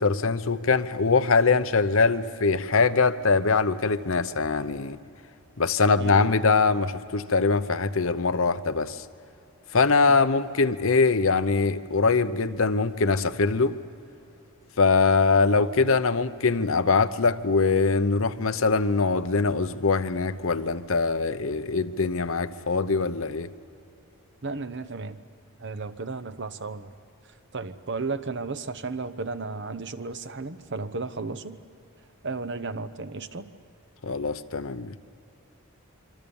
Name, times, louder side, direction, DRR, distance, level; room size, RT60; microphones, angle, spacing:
voice 1, 0.0-5.0 5.6-9.0 9.7-13.8 14.8-23.5 34.0-35.0, left 4 dB, 60° left, 11 dB, 0.8 m, -23 dB
voice 2, 6.0-6.3 10.1-10.2 24.4-25.2 25.6-26.9 27.5-31.6 32.2-33.5, right 3 dB, 50° right, 10 dB, 0.9 m, -34 dB
26.0 x 24.5 x 7.1 m, 2.8 s
head